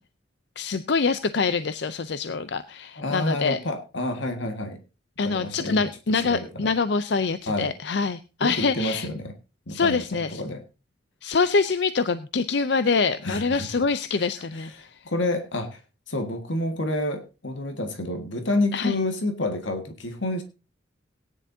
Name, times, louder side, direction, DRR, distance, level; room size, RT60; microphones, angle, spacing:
voice 1, 0.6-3.6 5.2-9.1 9.7-10.4 11.2-14.9 18.7-19.0, left 4 dB, 60° left, 13 dB, 0.5 m, -25 dB
voice 2, 3.0-4.8 5.2-6.7 7.5-7.7 8.4-9.3 9.7-10.6 13.2-13.9 14.2-15.8 16.1-20.4, left 1 dB, 80° left, 6 dB, 1.7 m, -29 dB
18.0 x 10.0 x 2.7 m, 0.29 s
head